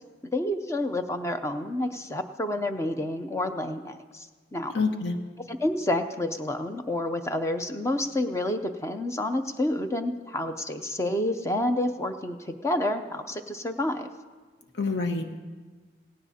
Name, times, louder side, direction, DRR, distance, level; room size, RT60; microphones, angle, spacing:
voice 1, 0.3-4.3 4.5-4.7 5.5-14.1, left 1 dB, 15° left, 7 dB, 0.5 m, -29 dB
voice 2, 4.7-5.2 14.8-15.4, left 3 dB, 70° left, 5 dB, 1.1 m, -27 dB
17.5 x 17.0 x 2.8 m, 1.4 s
head